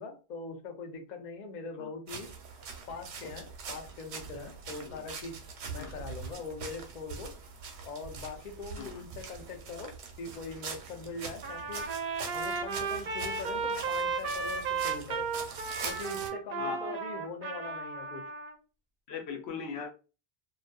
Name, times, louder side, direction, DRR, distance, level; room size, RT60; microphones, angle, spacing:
voice 1, 0.0-2.3 2.9-5.4 5.7-7.3 7.8-11.9 12.3-15.3 15.8-18.2, left 4 dB, 55° left, 4 dB, 0.6 m, -42 dB
sound 1, 2.1-16.3, right 5 dB, 85° right, 0.9 m, -43 dB
Trumpet, 11.4-18.5, right 5 dB, 60° right, 0.7 m, -34 dB
voice 2, 16.6-17.0 19.1-19.9, left 6 dB, 80° left, 5 dB, 0.9 m, -39 dB
2.5 x 2.3 x 2.2 m, 0.33 s
omnidirectional pair, 1.1 m